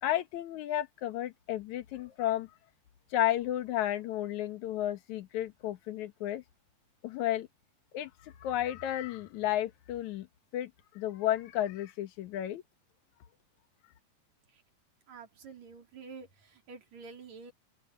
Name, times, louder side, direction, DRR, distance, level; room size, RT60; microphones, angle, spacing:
voice 1, 0.0-2.5 3.1-6.4 7.0-7.5 7.9-10.3 10.5-12.6, left 13 dB, 70° left, 2.6 m, -32 dB
voice 2, 15.1-17.5, right 4 dB, 60° right, 4.0 m, -48 dB
open air
omnidirectional pair, 3.7 m